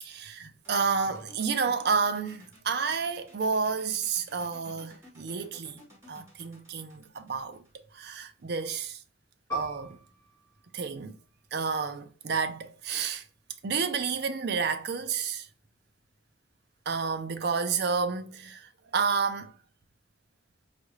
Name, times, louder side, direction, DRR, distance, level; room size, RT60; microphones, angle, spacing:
voice 1, 0.0-5.8 6.1-7.6 7.9-9.0 9.5-10.0 10.7-11.2 11.5-13.2 13.6-15.5 16.9-19.5, right 5 dB, 55° right, 0.5 m, -30 dB
sound 1, 0.6-8.4, left 1 dB, 15° right, 1.6 m, -55 dB
Piano, 9.5-14.5 14.9-15.0 15.8-16.2, equal, 15° left, 1.4 m, -44 dB
4.5 x 2.5 x 3.1 m
head